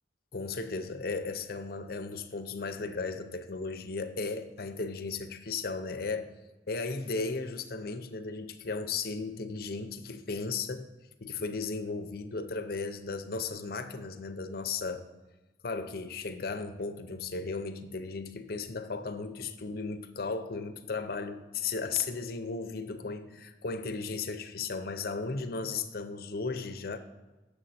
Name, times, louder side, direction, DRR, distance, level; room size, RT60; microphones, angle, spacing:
voice 1, 0.3-6.3 6.7-10.9 11.2-15.0 15.6-27.0, left 4 dB, 55° left, 9 dB, 0.6 m, -35 dB
7.9 x 6.8 x 4.2 m, 1.2 s
head